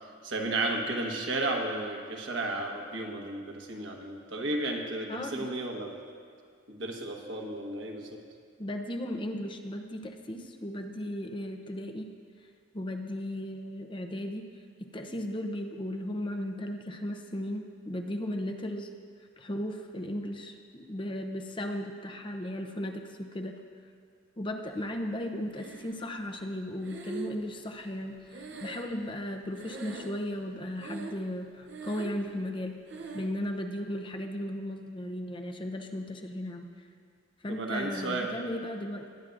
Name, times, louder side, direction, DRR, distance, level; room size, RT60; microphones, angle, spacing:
voice 1, 0.2-5.9 6.7-8.2 15.1-15.2 37.5-38.3, right 2 dB, 85° right, 1 dB, 1.3 m, -33 dB
voice 2, 5.1-5.6 8.6-12.1 12.7-14.4 14.9-18.9 19.4-23.5 24.4-32.8 33.1-36.7 37.4-39.1, left 1 dB, 25° left, 4 dB, 0.7 m, -36 dB
Breathing, 25.5-26.3 26.8-29.3 29.6-30.4 30.8-31.4 31.6-32.3 32.9-33.4, right 3 dB, 65° right, 0.8 m, -42 dB
20.5 x 9.1 x 2.6 m, 2.1 s
head